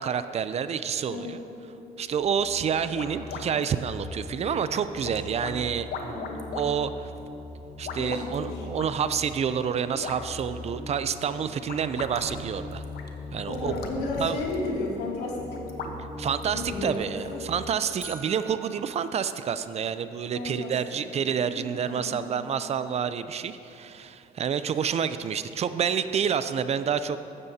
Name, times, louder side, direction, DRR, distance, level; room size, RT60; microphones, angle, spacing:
voice 1, 0.0-1.4 2.0-6.2 6.5-7.1 7.8-12.8 13.3-13.7 14.2-14.4 16.2-27.2, right 7 dB, 40° right, 12 dB, 0.4 m, -28 dB
sound 1, 0.6-17.5, left 2 dB, 40° left, 2.9 m, -41 dB
sound 2, 2.7-17.1, left 4 dB, 65° left, 1.1 m, -42 dB
voice 2, 6.0-6.4 8.0-8.7 13.5-15.6 16.5-17.4 18.3-18.4 20.3-21.0 21.5-22.2, left 2 dB, 85° left, -3 dB, 2.5 m, -34 dB
sound 3, 18.0-20.1, right 2 dB, 15° right, 1.2 m, -46 dB
15.0 x 12.0 x 2.8 m, 2.9 s
cardioid pair, 110°, 17 cm